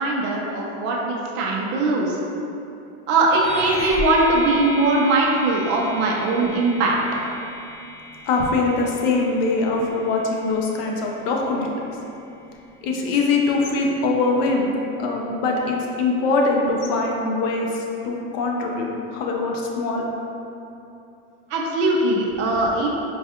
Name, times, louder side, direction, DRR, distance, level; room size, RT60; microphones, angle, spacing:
voice 1, 0.0-2.2 3.1-7.0 21.5-22.9, right 2 dB, 35° right, -2 dB, 0.4 m, -20 dB
sound 1, 3.3-13.2, equal, 10° left, 1.2 m, -35 dB
voice 2, 8.3-11.7 12.8-14.7 15.0-17.7 18.0-20.0, left 3 dB, 55° left, 0 dB, 0.6 m, -22 dB
4.6 x 2.3 x 2.8 m, 2.7 s
supercardioid pair, 165°, 34 cm